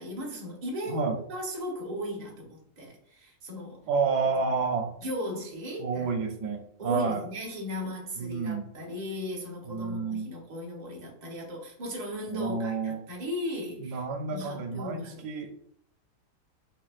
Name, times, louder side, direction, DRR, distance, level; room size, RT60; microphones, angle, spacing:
voice 1, 0.0-1.0 1.3-3.8 5.0-6.1 6.8-14.0 14.3-15.3, left 1 dB, 30° right, -2 dB, 1.0 m, -37 dB
voice 2, 0.9-1.2 3.9-4.9 5.8-7.2 8.2-8.7 9.7-10.3 12.3-13.0 13.8-15.5, right 4 dB, 90° right, 4 dB, 1.2 m, -30 dB
5.2 x 2.5 x 2.4 m, 0.69 s
omnidirectional pair, 1.7 m